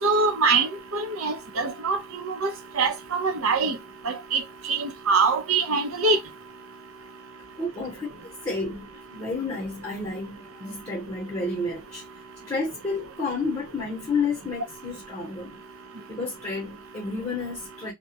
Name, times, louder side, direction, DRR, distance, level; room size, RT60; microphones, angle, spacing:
voice 1, 0.0-3.8 4.0-6.2, right 4 dB, 75° right, 0.6 m, -24 dB
voice 2, 7.6-8.1 8.4-12.0 12.5-15.6 16.1-17.9, left 3 dB, 20° left, 0.8 m, -31 dB
2.2 x 2.1 x 2.7 m
head